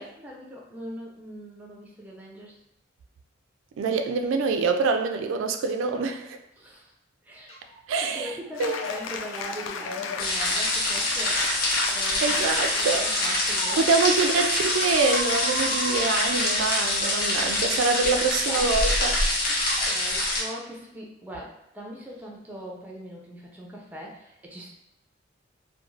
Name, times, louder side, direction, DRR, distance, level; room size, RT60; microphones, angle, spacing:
voice 1, 0.0-2.6 3.9-4.0 6.6-6.9 7.2-7.6 8.0-11.4 11.9-13.8 18.5-19.0 19.5-24.7, equal, 10° right, -3 dB, 0.5 m, -41 dB
voice 2, 3.8-6.4 7.9-8.3 8.6-8.8 12.2-13.1 13.7-19.2, right 4 dB, 85° right, 6 dB, 0.3 m, -25 dB
sound 1, 7.5-7.8 8.1-8.5 8.7-9.0 9.3-11.3 11.8-12.3 12.9-13.9 14.2-17.8 18.8-18.9 19.6-19.9, right 2 dB, 35° left, 1.0 m, -40 dB
Cheering / Applause, 8.5-16.1, left 6 dB, 85° left, 0.3 m, -36 dB
sound 2, 10.2-20.4, left 1 dB, 50° left, 0.7 m, -25 dB
2.4 x 2.2 x 3.1 m, 0.83 s
head